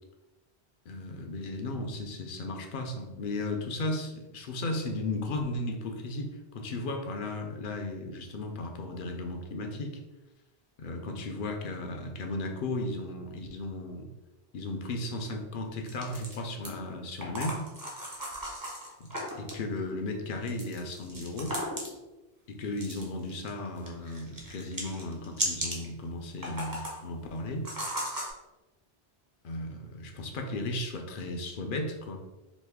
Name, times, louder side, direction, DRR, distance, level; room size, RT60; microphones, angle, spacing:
voice 1, 0.9-10.0 10.8-14.1 14.5-17.6 19.0-21.6 22.5-27.7 29.4-32.2, left 2 dB, 60° left, 3 dB, 0.7 m, -35 dB
sound 1, 15.8-16.7 17.2-19.6 20.5-22.0 22.8-23.5 23.8-25.9 26.3-27.0 27.6-28.3, equal, 25° right, 0.6 m, -36 dB
3.1 x 2.5 x 3.5 m, 1.1 s
omnidirectional pair, 1.1 m